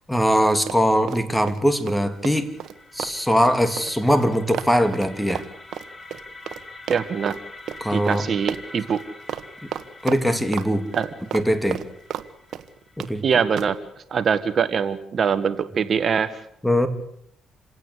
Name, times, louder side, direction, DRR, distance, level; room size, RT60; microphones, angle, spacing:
voice 1, 0.1-2.5 2.9-5.4 7.8-8.2 9.6-9.7 10.0-10.9 11.3-11.8 13.0-13.2 16.6-16.9, equal, 5° left, 9 dB, 2.7 m, -21 dB
Run, 0.7-1.6 1.9-6.6 6.9-7.4 7.7-7.8 8.1-8.2 8.5-9.0 9.3-9.5 9.7-10.7 10.9-12.3 12.5-13.1 13.6-13.8, right 10 dB, 70° right, 1.4 m, -32 dB
sound 1, 1.8-13.7, left 2 dB, 25° left, 4.1 m, -45 dB
voice 2, 6.9-7.3 7.9-9.0 10.9-11.1 13.2-13.7 14.1-16.3, right 6 dB, 50° right, 12 dB, 1.5 m, -23 dB
28.0 x 17.0 x 8.3 m, 0.74 s
cardioid pair, 90°, 0 cm